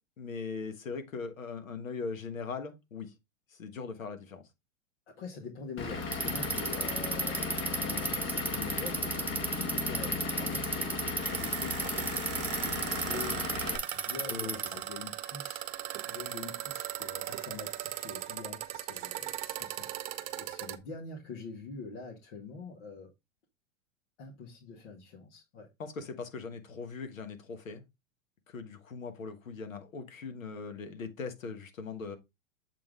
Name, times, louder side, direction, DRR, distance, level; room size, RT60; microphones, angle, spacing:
voice 1, 0.2-3.1 3.5-4.4 14.2-14.6 25.8-27.8 28.5-32.2, left 4 dB, 85° left, 1.4 m, -40 dB
voice 2, 5.2-19.9 20.4-23.1 24.2-25.7, left 4 dB, 60° left, 1.9 m, -45 dB
Vehicle / Engine, 5.8-13.8, left 4 dB, 30° left, 1.5 m, -36 dB
Bicycle, 6.0-14.8, right 4 dB, 5° right, 0.4 m, -34 dB
sound 1, 10.8-20.8, right 14 dB, 45° right, 0.9 m, -39 dB
7.4 x 3.7 x 3.6 m
hypercardioid pair, 110°, 39 cm